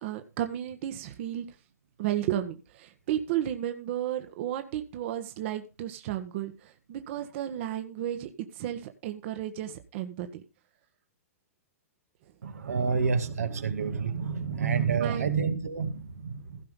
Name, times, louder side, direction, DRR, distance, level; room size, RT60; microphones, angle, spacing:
voice 1, 0.0-1.4 2.0-10.4 15.0-15.3, right 11 dB, 50° right, 7 dB, 1.5 m, -33 dB
voice 2, 12.4-16.6, right 6 dB, 85° right, 7 dB, 2.2 m, -29 dB
16.5 x 5.8 x 5.4 m, 0.31 s
hypercardioid pair, 130°, 8 cm